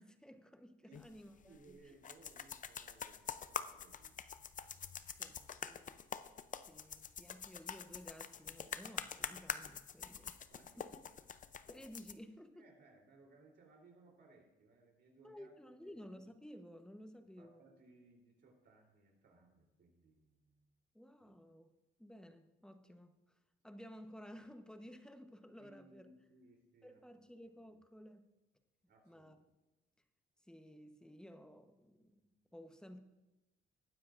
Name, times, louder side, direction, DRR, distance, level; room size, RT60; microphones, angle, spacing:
voice 1, 0.0-1.9 5.2-6.0 6.7-10.4 10.8-11.0 11.7-12.6 15.2-17.7 20.9-21.7 22.0-23.2 23.6-26.1 26.8-28.2 29.1-29.4 30.5-32.2 32.5-33.0, equal, 5° left, 7 dB, 1.0 m, -55 dB
voice 2, 0.8-5.0 10.5-10.9 12.5-16.1 17.4-20.7 21.2-21.3 25.6-27.3 27.7-27.8 28.9-29.3 32.2-32.3, right 3 dB, 60° right, 0 dB, 3.3 m, -65 dB
sound 1, 0.9-12.1, left 7 dB, 40° left, 0.6 m, -46 dB
19.0 x 9.5 x 2.5 m, 1.1 s
cardioid pair, 90°, 20 cm